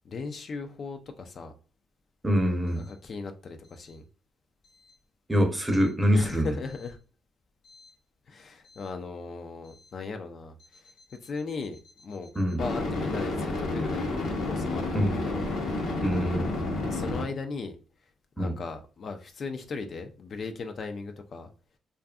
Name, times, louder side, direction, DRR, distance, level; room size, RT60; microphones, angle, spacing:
voice 1, 0.0-1.5 2.8-4.0 6.1-7.0 8.3-10.9 11.2-15.5 16.7-17.8 18.4-21.5, left 4 dB, 50° left, 6 dB, 0.3 m, -37 dB
voice 2, 2.2-2.8 5.3-6.5 12.4-12.6 14.9-15.2 16.0-16.5 18.4-18.5, equal, 15° right, 4 dB, 0.6 m, -24 dB
sound 1, 7.7-7.9 12.6-17.2, left 2 dB, 75° left, 0.8 m, -30 dB
2.6 x 2.4 x 2.3 m, 0.35 s
cardioid pair, 90°, 0 cm